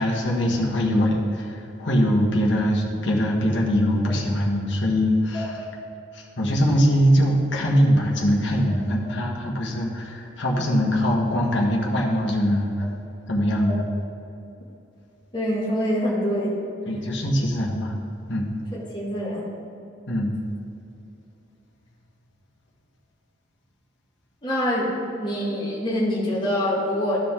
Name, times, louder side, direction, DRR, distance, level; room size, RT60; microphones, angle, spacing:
voice 1, 0.0-5.6 6.1-12.9 13.3-13.8 16.9-17.9 18.3-18.5 20.1-20.3, equal, 70° left, -2 dB, 1.5 m, -22 dB
voice 2, 15.3-16.6 18.7-19.5 24.4-24.9 25.2-27.2, equal, 25° left, -6 dB, 2.0 m, -25 dB
14.0 x 5.2 x 3.7 m, 2.7 s
head